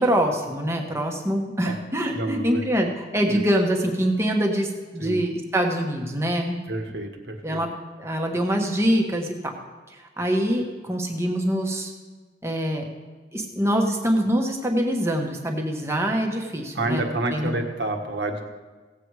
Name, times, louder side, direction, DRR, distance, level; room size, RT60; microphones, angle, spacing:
voice 1, 0.0-6.6 7.4-7.7 8.0-9.5 9.9-11.9 12.4-12.8 13.3-17.0 17.3-17.6, equal, 15° right, 2 dB, 1.3 m, -24 dB
voice 2, 2.1-2.6 3.2-3.4 5.0-5.2 6.7-7.6 16.7-18.4, right 2 dB, 70° right, 4 dB, 1.5 m, -28 dB
16.5 x 8.0 x 4.8 m, 1.3 s
head